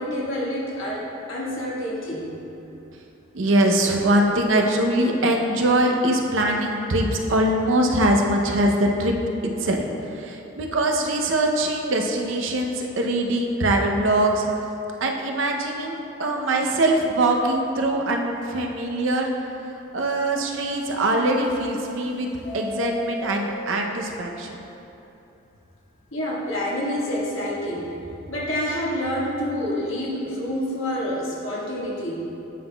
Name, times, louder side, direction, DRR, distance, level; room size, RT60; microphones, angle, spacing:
voice 1, 0.0-2.3 26.1-27.9 28.3-32.3, equal, 80° left, -5 dB, 1.4 m, -28 dB
voice 2, 3.3-9.2 9.6-14.5 15.0-22.3 22.5-24.6, right 1 dB, 75° right, 1 dB, 0.6 m, -22 dB
Subway metro underground, 21.3-22.0 22.3-24.0, left 1 dB, 50° left, 0.5 m, -35 dB
9.3 x 5.6 x 2.2 m, 2.9 s
head